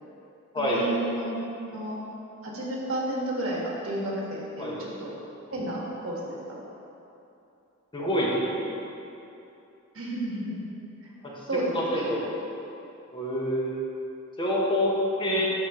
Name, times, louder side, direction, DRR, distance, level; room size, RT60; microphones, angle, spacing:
voice 1, 0.6-2.0 2.4-5.1 5.5-6.4 9.9-10.5 11.0-11.1 11.5-12.1 15.2-15.4, right 1 dB, 85° right, -4 dB, 1.4 m, -32 dB
voice 2, 7.9-8.3 8.6-8.7 11.7-12.3 13.1-13.7 14.4-14.9 15.2-15.5, equal, 25° left, -4 dB, 1.1 m, -27 dB
11.5 x 4.2 x 3.0 m, 2.8 s
head